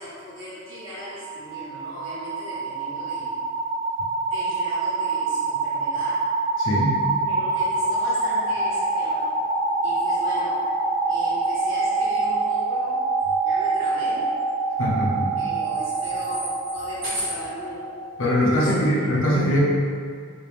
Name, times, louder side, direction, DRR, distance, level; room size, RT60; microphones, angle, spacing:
voice 1, 0.0-3.3 4.3-6.2 7.3-9.3 9.8-10.6 11.1-13.0 13.4-14.3 15.4-17.9 18.5-19.0, equal, 70° right, -9 dB, 1.3 m, -37 dB
sound 1, 0.8-18.6, right 3 dB, ahead, 0.7 m, -26 dB
voice 2, 6.6-7.0 14.8-15.3 18.2-19.6, equal, 70° left, -4 dB, 0.7 m, -22 dB
3.2 x 2.9 x 3.3 m, 2.1 s
head